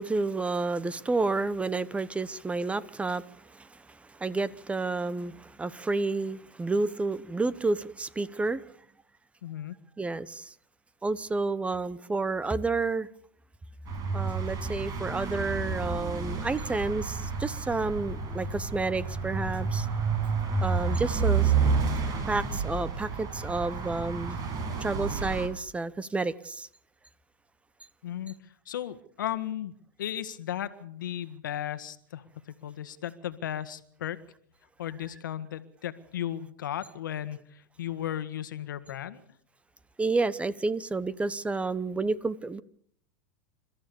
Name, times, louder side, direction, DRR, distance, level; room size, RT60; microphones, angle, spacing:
voice 1, 0.0-8.6 10.0-10.5 11.0-13.1 14.1-19.9 20.6-21.5 22.3-24.4 24.8-26.7 40.0-42.6, right 3 dB, 10° right, 0.9 m, -30 dB
voice 2, 9.4-9.8 28.0-28.3 28.6-29.7 30.0-32.2 32.6-34.2 34.8-39.2, left 11 dB, 85° left, 1.6 m, -35 dB
sound 1, 13.9-25.5, right 5 dB, 40° right, 5.8 m, -30 dB
28.5 x 14.0 x 7.0 m
hypercardioid pair, 115°, 10 cm